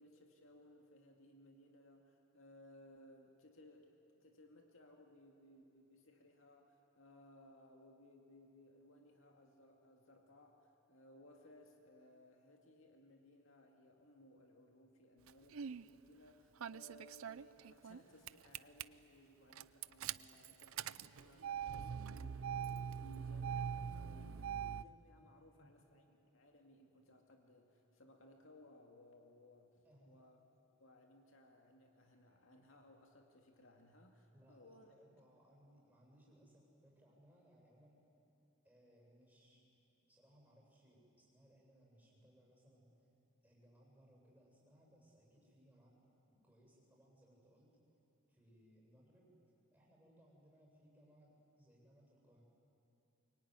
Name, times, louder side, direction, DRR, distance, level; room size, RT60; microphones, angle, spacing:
voice 1, 0.0-30.4 30.8-35.2, left 1 dB, 70° left, 3 dB, 2.2 m, -63 dB
Engine starting, 15.3-15.8 16.6-18.0 18.3-18.8 19.5-24.8, right 8 dB, 80° right, 0.5 m, -43 dB
voice 2, 25.2-25.9 29.8-30.2 34.3-38.0 38.6-39.6 40.1-43.1 43.4-46.0 46.3-47.8 48.3-49.3 49.7-52.4, equal, 5° right, -3 dB, 7.8 m, -67 dB
23.5 x 23.5 x 9.7 m, 2.8 s
head